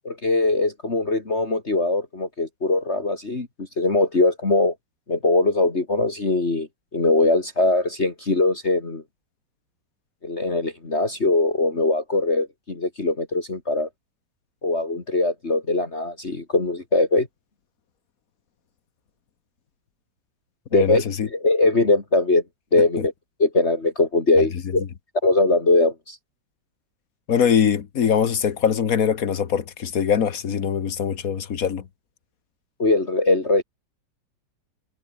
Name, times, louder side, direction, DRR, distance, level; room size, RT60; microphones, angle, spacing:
voice 1, 0.0-4.7 5.1-6.7 6.9-9.0 10.2-13.9 14.6-17.3 20.7-21.0 21.3-22.4 22.7-23.1 23.4-24.8 25.2-26.2 32.8-33.6, left 2 dB, 35° left, 3.1 m, -21 dB
voice 2, 20.7-21.3 27.3-31.8, left 7 dB, 50° left, 1.5 m, -22 dB
omnidirectional pair, 2.0 m